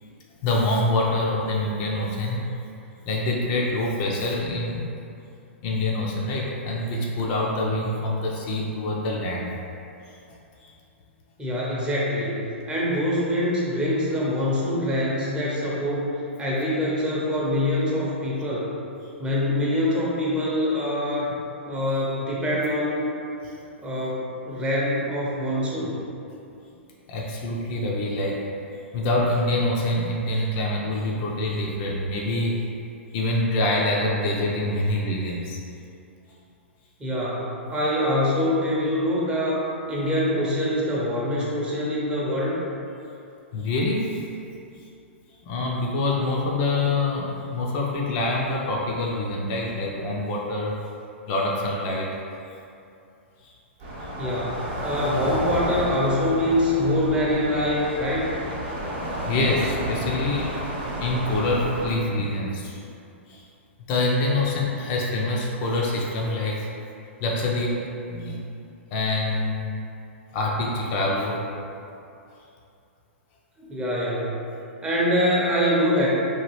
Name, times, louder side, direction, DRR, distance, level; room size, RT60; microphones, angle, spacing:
voice 1, 0.4-2.4 3.1-4.9 5.6-9.5 10.6-10.7 23.4-23.5 27.1-28.4 28.9-32.6 33.1-35.6 43.5-44.2 45.4-50.8 51.3-52.1 53.4-53.5 54.0-54.1 59.3-60.6 61.0-62.8 63.3-63.4 63.9-66.7 67.2-67.8 68.1-68.4 68.9-69.7 70.3-71.4, left 2 dB, 40° left, -2 dB, 0.4 m, -25 dB
voice 2, 11.4-16.1 16.4-18.7 19.2-21.3 21.7-23.0 23.8-26.0 37.0-39.6 39.9-42.6 54.2-58.3 73.6-74.4 74.8-76.1, left 1 dB, 15° right, -6 dB, 0.6 m, -24 dB
sound 1, 53.8-61.9, equal, 45° right, 0.8 m, -31 dB
2.9 x 2.3 x 3.0 m, 2.6 s
hypercardioid pair, 120°, 7 cm